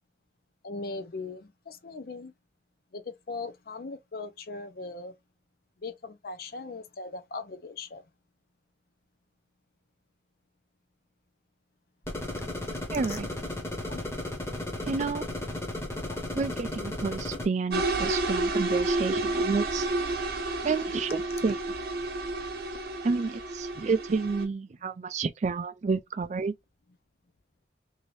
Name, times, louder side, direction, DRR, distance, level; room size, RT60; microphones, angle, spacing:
voice 1, 0.6-2.3 2.9-5.1 5.8-8.0 13.1-13.2 13.9-14.0 16.1-16.2, left 3 dB, 55° left, 0.5 m, -39 dB
sound 1, 12.1-17.5, left 1 dB, 15° left, 0.8 m, -35 dB
voice 2, 12.9-13.3 14.8-15.3 16.3-19.9 20.6-21.7 23.0-26.5, right 4 dB, 40° right, 0.3 m, -30 dB
sound 2, 17.7-24.4, right 2 dB, 55° right, 0.9 m, -30 dB
2.7 x 2.5 x 3.2 m
head